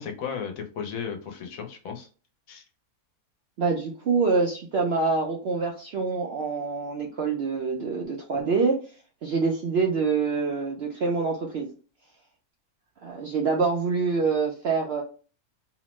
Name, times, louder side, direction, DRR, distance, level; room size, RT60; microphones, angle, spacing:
voice 1, 0.0-2.1 2.5-2.6, left 7 dB, 70° left, 4 dB, 1.0 m, -35 dB
voice 2, 3.6-8.8 9.2-11.7 13.0-15.0, right 4 dB, 65° right, 0 dB, 0.6 m, -26 dB
2.9 x 2.0 x 3.0 m, 0.37 s
omnidirectional pair, 1.6 m